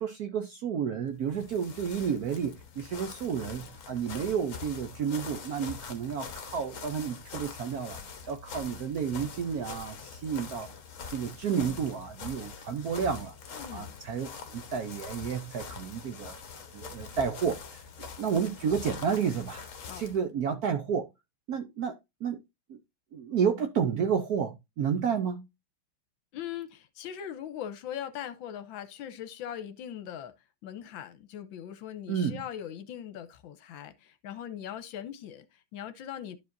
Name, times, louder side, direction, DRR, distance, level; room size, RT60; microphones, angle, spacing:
voice 1, 0.0-8.0 8.3-10.7 11.1-13.4 13.7-16.4 16.7-19.6 20.0-21.1 21.5-22.4 22.7-22.8 23.1-25.5 32.1-32.4, right 7 dB, 65° right, 0.9 m, -31 dB
sound 1, 1.1-20.2, left 6 dB, 45° left, 1.2 m, -44 dB
voice 2, 13.5-14.0 19.9-20.1 26.3-30.3 30.6-36.4, left 10 dB, 75° left, 1.4 m, -40 dB
12.0 x 4.9 x 2.5 m
omnidirectional pair, 2.3 m